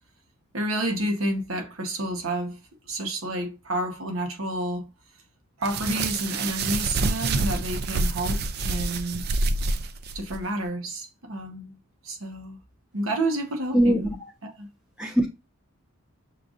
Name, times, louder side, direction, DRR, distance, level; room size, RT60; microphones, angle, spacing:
voice 1, 0.5-4.9 5.6-9.3 10.1-11.8 12.0-12.6 12.9-14.1 14.4-14.7, right 1 dB, 70° right, 1.0 m, -30 dB
sound 1, 5.6-10.4, right 3 dB, 45° right, 0.3 m, -27 dB
voice 2, 13.7-14.1 15.0-15.3, right 1 dB, 5° right, 0.9 m, -21 dB
6.6 x 2.5 x 2.5 m
head